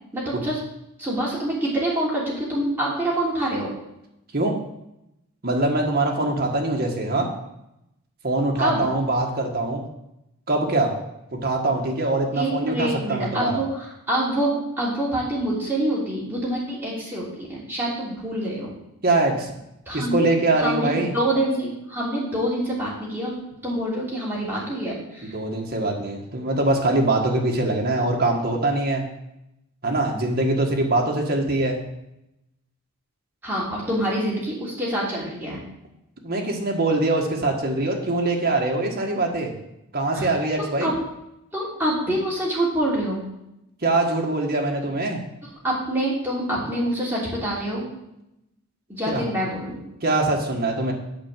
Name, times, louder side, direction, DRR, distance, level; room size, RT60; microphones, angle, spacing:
voice 1, 0.1-0.6 1.0-3.7 8.6-8.8 12.3-18.7 19.9-20.2 20.6-23.3 23.6-25.3 33.4-35.6 40.1-40.3 40.6-41.0 41.5-43.2 45.6-47.9 48.9-49.8, right 1 dB, 10° right, -7 dB, 2.9 m, -26 dB
voice 2, 5.4-7.3 8.2-9.8 10.5-10.9 11.3-13.6 19.0-19.5 19.9-21.1 25.2-29.0 29.8-31.8 36.2-39.5 39.9-40.9 43.8-45.2 49.1-49.2 50.0-50.9, right 2 dB, 45° right, 1 dB, 1.6 m, -23 dB
8.8 x 5.0 x 7.4 m, 0.86 s
head